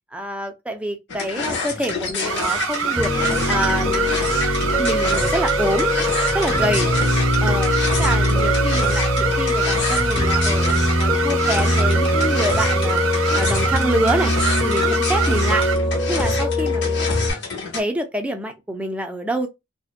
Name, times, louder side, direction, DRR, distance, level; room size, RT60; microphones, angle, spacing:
voice 1, 0.1-3.1 3.5-4.1 4.8-5.9 6.3-6.9 7.4-10.7 11.0-14.3 14.6-15.7 16.1-17.0 17.7-19.5, right 1 dB, 5° right, 0.4 m, -26 dB
sound 1, 1.1-17.8, left 3 dB, 60° left, 0.8 m, -28 dB
sound 2, 2.3-15.8, right 7 dB, 80° right, 0.5 m, -25 dB
Piano, 3.0-17.3, left 1 dB, 15° left, 0.8 m, -22 dB
2.6 x 2.1 x 2.3 m
head